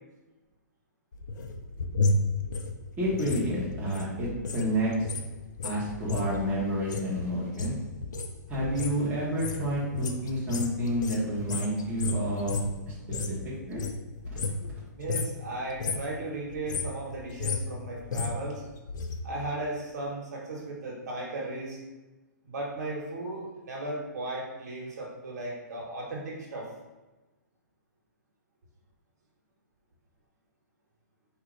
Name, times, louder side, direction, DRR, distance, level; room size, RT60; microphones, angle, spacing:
sound 1, 1.1-4.7 4.9-13.4 13.7-14.8 15.0-15.4 15.7-16.1 16.5-19.2 19.5-19.6, left 3 dB, 75° left, 0.6 m, -32 dB
voice 1, 3.0-4.9 5.6-7.7 8.5-13.3 13.7-13.8 14.3-14.4, equal, 15° right, -7 dB, 1.2 m, -30 dB
voice 2, 15.0-18.6 19.2-21.8 22.4-26.7, right 2 dB, 65° right, -2 dB, 1.4 m, -36 dB
4.5 x 2.8 x 3.9 m, 1.2 s
hypercardioid pair, 155°, 10 cm